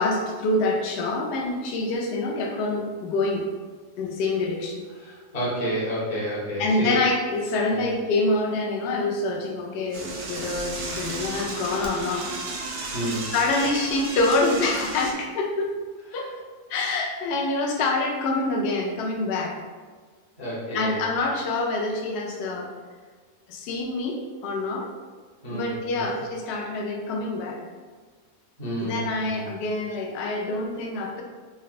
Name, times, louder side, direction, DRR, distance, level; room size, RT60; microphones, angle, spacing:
voice 1, 0.0-3.5 4.0-4.8 6.6-12.3 13.3-15.7 16.1-16.3 16.7-19.6 20.7-22.7 23.5-24.9 25.5-27.6 28.8-31.2, left 2 dB, 75° left, 0 dB, 0.6 m, -26 dB
voice 2, 4.9-7.0 7.7-7.9 12.9-13.3 16.1-16.3 20.4-21.0 25.4-26.1 28.6-29.5, equal, 35° left, -7 dB, 0.7 m, -30 dB
Door / Toilet flush, 9.9-15.1, right 2 dB, 85° right, 1.1 m, -33 dB
3.9 x 2.1 x 2.4 m, 1.5 s
omnidirectional pair, 1.6 m